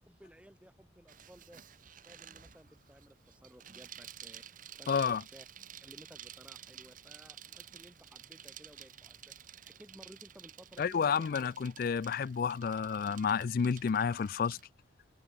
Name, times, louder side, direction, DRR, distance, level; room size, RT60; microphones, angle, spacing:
voice 1, 0.1-1.6 2.0-5.5 5.8-9.3 9.6-11.5, equal, 5° right, 1.2 m, -57 dB
Bicycle, 1.1-14.7, right 10 dB, 45° right, 1.2 m, -52 dB
voice 2, 4.9-5.2 10.8-14.6, left 6 dB, 50° left, 0.3 m, -30 dB
head